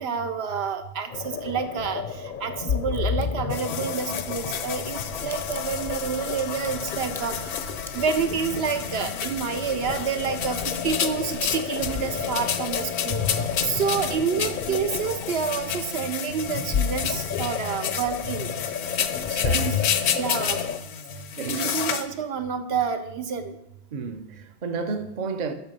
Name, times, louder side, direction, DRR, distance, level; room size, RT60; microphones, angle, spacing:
voice 1, 0.0-2.0 2.4-7.4 7.9-13.2 13.6-18.5 19.5-19.8 20.2-20.6 21.5-23.5, right 6 dB, 70° right, 0.9 m, -28 dB
sound 1, 1.1-20.8, left 7 dB, 55° left, 0.6 m, -32 dB
Crack, 2.9-3.3 4.2-10.4 10.7-11.4 11.7-11.8, left 1 dB, 5° left, 0.5 m, -47 dB
sound 2, 3.5-22.1, left 8 dB, 80° left, 0.9 m, -31 dB
voice 2, 19.0-19.8 21.4-21.8 23.9-25.5, right 4 dB, 45° right, 0.8 m, -32 dB
8.3 x 5.7 x 5.3 m
omnidirectional pair, 1.1 m